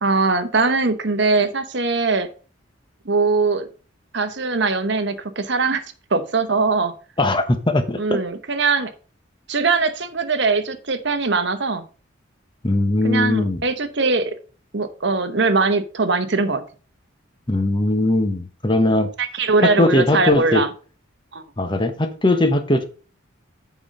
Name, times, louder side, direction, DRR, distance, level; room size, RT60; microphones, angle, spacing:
voice 1, 0.0-2.3 3.0-3.7 4.1-5.8 6.1-6.9 8.0-8.9 9.5-11.8 13.0-14.3 14.7-16.6 19.2-20.7 21.3-21.4, right 3 dB, 60° right, 10 dB, 1.0 m, -21 dB
voice 2, 7.2-8.2 12.6-13.6 17.5-19.1 19.6-20.6 21.6-22.8, left 2 dB, 25° left, 8 dB, 0.9 m, -19 dB
8.0 x 5.2 x 5.3 m, 0.37 s
head